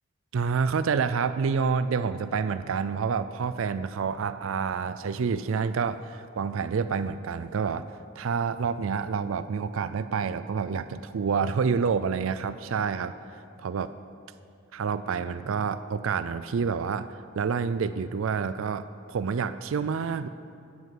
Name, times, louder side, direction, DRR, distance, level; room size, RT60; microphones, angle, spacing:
voice 1, 0.3-13.1 13.6-13.9 14.7-20.3, right 5 dB, 70° right, 13 dB, 0.4 m, -28 dB
12.5 x 8.2 x 7.7 m, 2.5 s
head